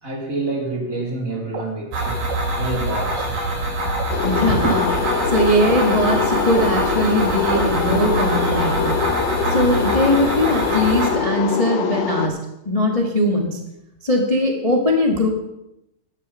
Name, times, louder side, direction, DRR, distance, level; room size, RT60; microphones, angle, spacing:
voice 1, 0.0-2.2 2.5-3.3 4.5-4.7, right 3 dB, 25° right, 0 dB, 3.2 m, -26 dB
sound 1, 1.5-1.6 2.3-2.4 3.1-3.3 4.0-4.1 4.9-5.0 5.7-5.8 6.6-6.7 7.5-7.6 8.5-8.6, right 5 dB, 55° right, 1.2 m, -30 dB
sound 2, 1.9-11.1, right 1 dB, 85° right, 5.4 m, -24 dB
sound 3, 4.1-12.3, left 7 dB, 85° left, 2.9 m, -24 dB
voice 2, 4.2-4.8 5.3-8.9 9.5-12.4 12.6-13.6 14.0-15.3, left 1 dB, 45° left, 2 dB, 0.4 m, -20 dB
15.5 x 12.0 x 5.5 m, 0.86 s
omnidirectional pair, 3.9 m